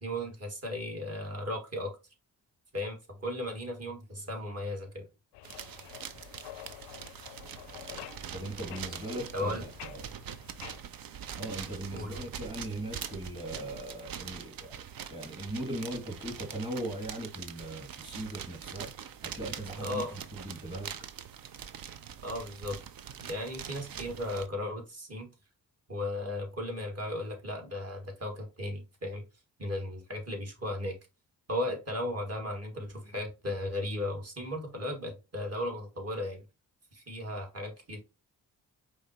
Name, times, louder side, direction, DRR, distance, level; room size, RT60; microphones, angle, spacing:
voice 1, 0.0-2.0 2.7-5.0 9.3-9.7 11.9-12.2 19.8-20.2 22.2-22.8 23.2-25.3 25.9-29.2 29.6-31.0 31.5-36.4 36.9-38.0, left 1 dB, 35° right, 2.0 m, -36 dB
sound 1, 5.3-10.8, left 14 dB, 75° left, 0.5 m, -48 dB
sound 2, 5.4-24.5, right 8 dB, 55° right, 0.7 m, -43 dB
voice 2, 8.3-10.1 11.4-14.8 15.1-18.9 19.2-20.9, right 1 dB, 10° right, 1.7 m, -39 dB
4.9 x 3.2 x 2.8 m
hypercardioid pair, 40°, 41 cm